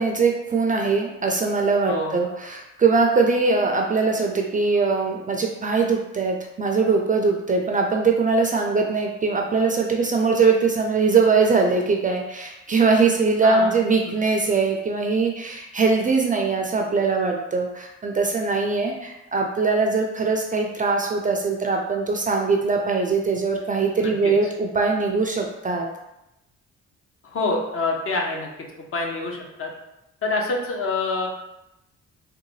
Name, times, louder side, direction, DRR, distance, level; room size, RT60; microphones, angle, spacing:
voice 1, 0.0-25.9, right 4 dB, 25° right, 2 dB, 0.4 m, -21 dB
voice 2, 1.9-2.2 13.4-13.7 24.0-24.3 27.2-28.5 28.8-29.7 30.2-31.3, left 3 dB, 45° left, 0 dB, 0.8 m, -26 dB
3.7 x 2.2 x 3.1 m, 0.90 s
cardioid pair, 90°, 30 cm